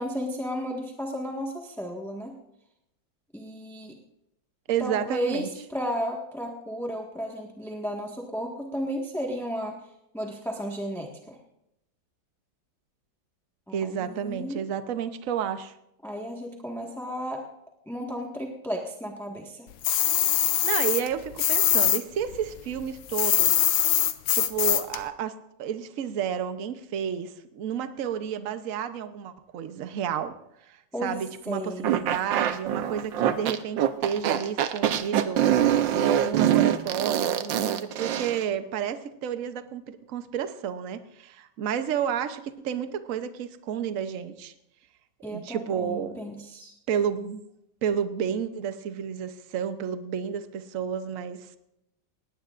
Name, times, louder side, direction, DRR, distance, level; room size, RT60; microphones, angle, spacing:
voice 1, 0.0-2.3 3.3-4.0 4.8-9.8 10.1-11.4 13.7-14.6 16.0-17.4 17.9-19.7 30.9-31.2 31.5-32.0 45.2-46.7, equal, ahead, 0 dB, 1.3 m, -33 dB
voice 2, 4.7-5.5 13.7-15.7 20.4-23.6 24.3-30.4 30.7-44.5 45.2-46.2 46.9-47.4 47.8-51.5, right 8 dB, 55° right, 10 dB, 1.1 m, -31 dB
sound 1, 19.8-22.0 22.3-25.0, left 12 dB, 90° left, 1.5 m, -23 dB
sound 2, 31.8-38.4, right 10 dB, 90° right, 1.5 m, -24 dB
19.5 x 17.5 x 2.5 m, 0.81 s
omnidirectional pair, 2.0 m